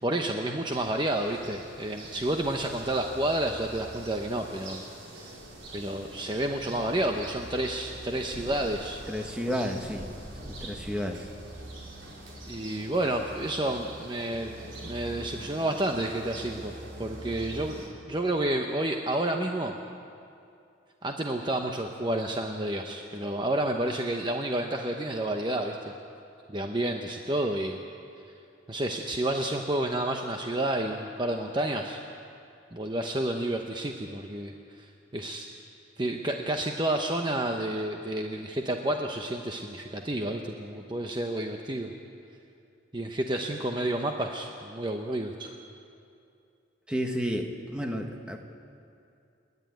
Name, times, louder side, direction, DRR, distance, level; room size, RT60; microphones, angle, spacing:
voice 1, 0.0-4.8 5.2-5.3 5.7-9.0 12.5-14.6 14.8-16.7 17.0-19.8 21.0-25.9 26.5-27.8 28.7-32.0 32.7-35.5 36.0-41.9 42.9-45.6, right 1 dB, 25° right, 3 dB, 0.9 m, -30 dB
sound 1, 0.7-17.9, right 1 dB, 80° right, 4.5 m, -44 dB
voice 2, 9.1-10.1 10.4-11.3 46.9-48.4, equal, 5° right, 3 dB, 1.4 m, -31 dB
29.5 x 11.0 x 9.2 m, 2.6 s
head